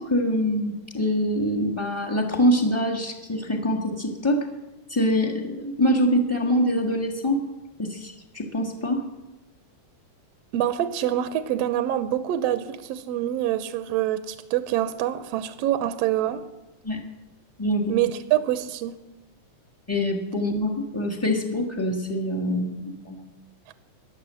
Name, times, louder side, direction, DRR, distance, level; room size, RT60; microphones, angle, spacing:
voice 1, 0.0-4.5 4.9-7.4 7.8-9.1 16.8-17.0 17.6-18.0 19.9-23.3, equal, 15° left, 4 dB, 0.5 m, -24 dB
voice 2, 10.5-16.4 17.9-19.0, right 12 dB, 75° right, 12 dB, 1.5 m, -25 dB
15.5 x 10.5 x 7.6 m, 1.1 s
omnidirectional pair, 3.5 m